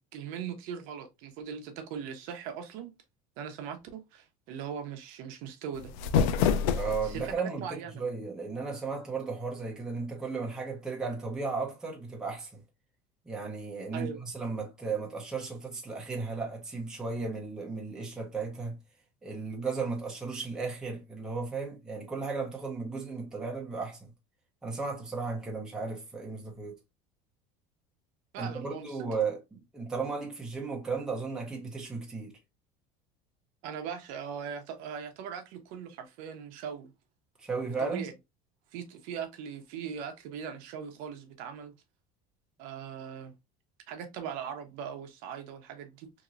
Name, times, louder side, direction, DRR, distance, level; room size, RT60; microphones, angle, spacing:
voice 1, 0.1-2.9 3.4-5.9 7.0-8.0 13.9-14.2 28.3-29.1 33.6-36.9 37.6-38.1 38.7-41.7 42.6-43.3 43.9-46.1, right 7 dB, 55° right, 0.7 m, -40 dB
sound 1, 5.7-7.3, left 7 dB, 85° left, 0.4 m, -27 dB
voice 2, 6.7-12.6 13.3-18.8 19.2-24.1 24.6-26.8 28.4-32.4 37.4-38.1, right 4 dB, 5° right, 0.6 m, -35 dB
2.9 x 2.9 x 2.4 m
cardioid pair, 180°, 17 cm